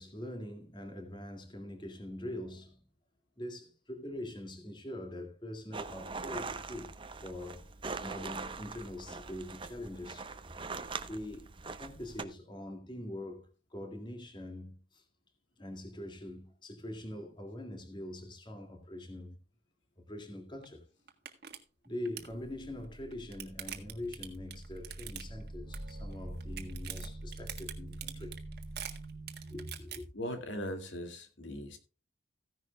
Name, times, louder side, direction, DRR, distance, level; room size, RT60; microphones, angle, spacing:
voice 1, 0.0-2.8 3.4-6.9 7.2-7.7 8.0-10.3 11.1-11.5 11.8-15.0 15.6-19.4 20.0-20.8 21.8-28.4 29.5-30.1, left 1 dB, 25° left, 2.2 m, -43 dB
sound 1, 5.7-12.2, right 4 dB, 25° right, 0.9 m, -42 dB
sound 2, 20.6-20.7 21.1-21.6 21.8-22.3 22.9-25.5 25.7-26.1 26.4-30.0, right 11 dB, 55° right, 1.6 m, -43 dB
sound 3, 22.2-29.7, right 1 dB, 75° right, 1.3 m, -45 dB
voice 2, 30.1-31.8, equal, 80° left, 2.3 m, -39 dB
15.5 x 10.5 x 2.3 m
head